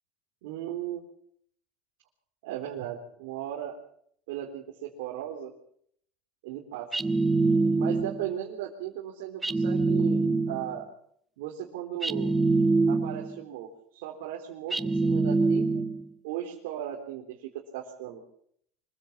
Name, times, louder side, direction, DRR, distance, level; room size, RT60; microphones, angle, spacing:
voice 1, 0.4-1.0 2.4-3.8 4.3-5.5 6.4-7.0 7.7-10.9 11.4-12.3 12.9-15.8 16.2-18.2, right 11 dB, 75° right, -1 dB, 3.7 m, -37 dB
sound 1, 6.9-8.3 9.4-10.8 12.0-13.4 14.7-16.1, right 3 dB, 10° right, 1.2 m, -25 dB
25.0 x 15.5 x 7.2 m, 0.66 s
supercardioid pair, 100°, 0 cm